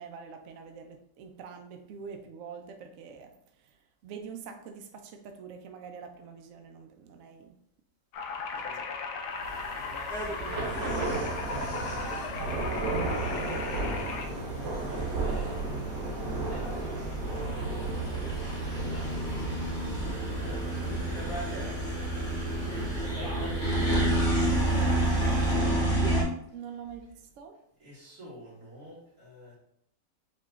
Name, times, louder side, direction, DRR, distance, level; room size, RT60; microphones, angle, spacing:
voice 1, 0.0-7.6 8.3-8.9 26.5-27.6, right 6 dB, 75° right, 0.7 m, -45 dB
sound 1, 8.1-14.3, left 4 dB, 75° left, 1.3 m, -37 dB
Thunder / Rain, 9.4-25.7, right 3 dB, 90° right, 1.7 m, -35 dB
voice 2, 9.7-14.2 14.9-15.9 16.5-17.7 18.4-19.4 20.4-20.7 21.1-26.3 27.8-29.6, equal, 55° right, 2.6 m, -49 dB
sound 2, 10.1-26.2, right 1 dB, 60° left, 1.6 m, -31 dB
7.3 x 2.9 x 2.4 m
omnidirectional pair, 1.8 m